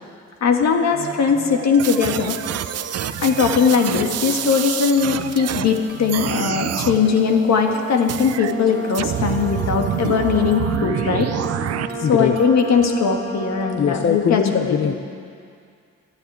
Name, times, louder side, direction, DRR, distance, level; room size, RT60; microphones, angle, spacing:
voice 1, 0.4-2.4 3.2-11.3 12.1-14.8, left 6 dB, 65° left, 3 dB, 1.8 m, -19 dB
sound 1, 0.9-13.0, right 6 dB, 80° right, 1.7 m, -38 dB
sound 2, 1.8-5.8 6.1-7.0 8.1-8.5 8.9-11.9, right 10 dB, 55° right, 0.6 m, -27 dB
voice 2, 3.0-3.3 12.0-12.4 13.8-15.0, left 7 dB, 40° left, 7 dB, 0.7 m, -22 dB
Brass instrument, 8.3-14.1, equal, 20° left, 3.9 m, -33 dB
13.0 x 10.5 x 9.0 m, 2.3 s
cardioid pair, 90°, 30 cm